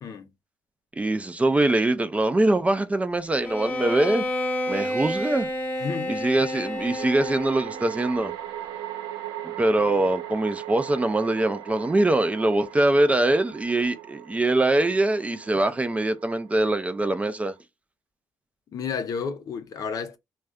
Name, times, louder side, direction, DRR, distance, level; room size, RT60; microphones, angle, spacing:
voice 1, 1.0-4.2 4.7-5.5 6.1-8.3 9.4-17.5, right 2 dB, 20° right, 0.4 m, -23 dB
sound 1, 3.3-3.4 6.2-17.6, right 12 dB, 85° right, 0.4 m, -39 dB
Bowed string instrument, 3.4-7.8, left 1 dB, 20° left, 0.9 m, -30 dB
voice 2, 5.8-6.2 18.7-20.2, left 6 dB, 55° left, 0.5 m, -31 dB
2.4 x 2.2 x 3.5 m
supercardioid pair, 75°, 7 cm